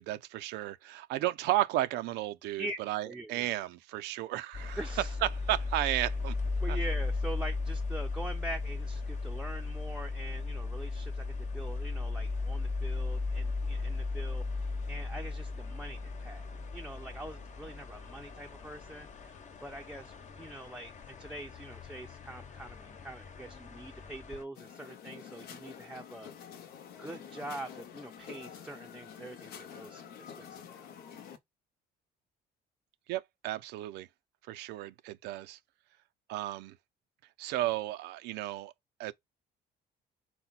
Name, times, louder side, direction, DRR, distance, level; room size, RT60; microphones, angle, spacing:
voice 1, 0.0-4.8 5.5-6.3 6.7-6.8 33.1-34.1 34.5-35.6 36.3-36.8 37.4-38.7 39.0-39.1, right 15 dB, 85° right, 0.5 m, -33 dB
voice 2, 3.0-3.5 4.8-5.2 6.6-16.4 16.7-26.5 27.0-30.9, right 1 dB, 5° right, 0.5 m, -44 dB
sound 1, 4.5-24.4, left 3 dB, 45° left, 0.9 m, -36 dB
sound 2, 24.5-31.4, left 8 dB, 70° left, 0.9 m, -48 dB
4.2 x 2.2 x 3.9 m
cardioid pair, 110°, 17 cm